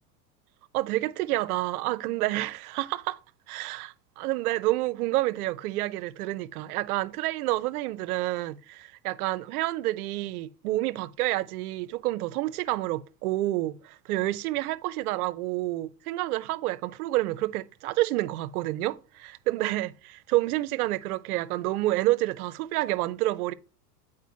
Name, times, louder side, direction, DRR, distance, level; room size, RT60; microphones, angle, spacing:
voice 1, 0.7-3.2 3.5-23.5, right 17 dB, 60° right, 0.6 m, -29 dB
8.2 x 5.0 x 2.7 m
hypercardioid pair, 100°, 50 cm